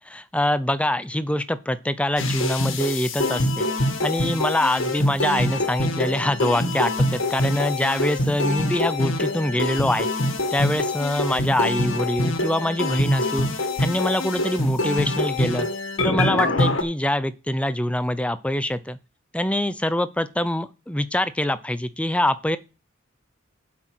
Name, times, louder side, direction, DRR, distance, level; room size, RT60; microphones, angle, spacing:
voice 1, 0.1-3.7 4.0-10.1 10.5-15.7 16.0-19.0 19.3-22.6, left 1 dB, 5° left, 0.6 m, -24 dB
sound 1, 2.2-16.8, left 1 dB, 75° left, 1.9 m, -25 dB
8.0 x 6.2 x 7.8 m
head